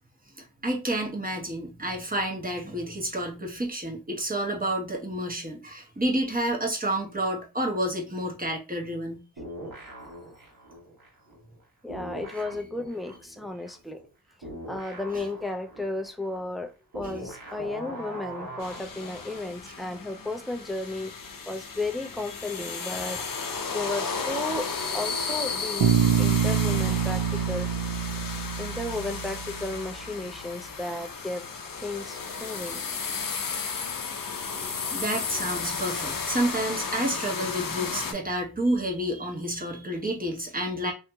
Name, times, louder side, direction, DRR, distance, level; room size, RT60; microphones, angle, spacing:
voice 1, 0.4-9.2 15.1-15.2 19.7-19.8 34.9-40.9, right 1 dB, 20° right, 1.0 m, -29 dB
sound 1, 9.4-11.6 11.9-19.5, right 1 dB, 60° right, 1.3 m, -42 dB
voice 2, 11.8-14.0 14.7-21.1 21.5-23.2 23.7-24.7 24.9-27.7 28.6-31.4 31.8-32.8, left 2 dB, ahead, 0.4 m, -34 dB
sound 2, 18.6-38.1, left 5 dB, 55° left, 0.6 m, -34 dB
Bass guitar, 25.8-29.8, right 8 dB, 75° right, 0.6 m, -26 dB
2.8 x 2.7 x 2.3 m
cardioid pair, 45°, 40 cm